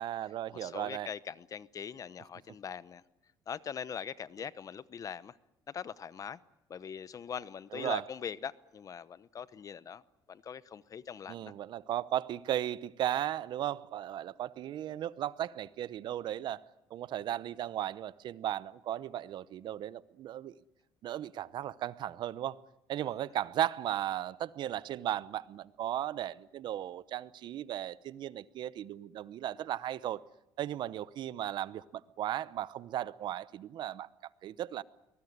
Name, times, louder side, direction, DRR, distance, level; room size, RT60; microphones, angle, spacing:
voice 1, 0.0-1.1 7.7-8.0 11.3-16.6 16.9-20.5 21.0-22.6 22.9-30.2 30.6-34.1 34.4-34.8, right 12 dB, 65° right, 0.8 m, -36 dB
voice 2, 0.6-3.0 3.5-5.3 5.7-6.4 6.7-10.0 10.3-11.5 23.0-23.1, left 7 dB, 40° left, 0.9 m, -42 dB
23.0 x 19.5 x 9.5 m
cardioid pair, 100°, 8 cm